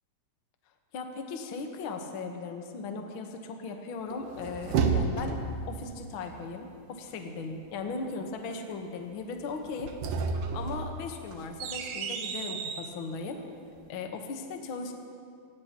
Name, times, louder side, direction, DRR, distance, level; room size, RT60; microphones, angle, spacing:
voice 1, 0.9-5.4 5.7-9.9 10.5-13.4 13.9-14.9, left 4 dB, 75° left, 3 dB, 1.1 m, -37 dB
sound 1, 4.1-5.6 9.7-12.9, right 5 dB, 70° right, 2.3 m, -31 dB
26.5 x 16.5 x 2.9 m, 2.3 s
omnidirectional pair, 4.1 m